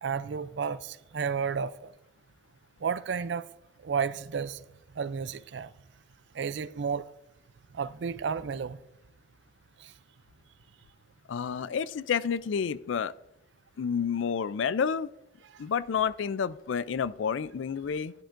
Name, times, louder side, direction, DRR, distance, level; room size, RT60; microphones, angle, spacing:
voice 1, 0.0-1.9 2.8-3.5 3.8-4.6 5.0-5.7 6.3-7.1 7.7-8.8 9.8-9.9, right 6 dB, 65° right, 0.4 m, -32 dB
voice 2, 11.3-13.1 13.8-15.1 15.6-18.1, left 6 dB, 80° left, 0.4 m, -29 dB
13.0 x 10.5 x 2.5 m
head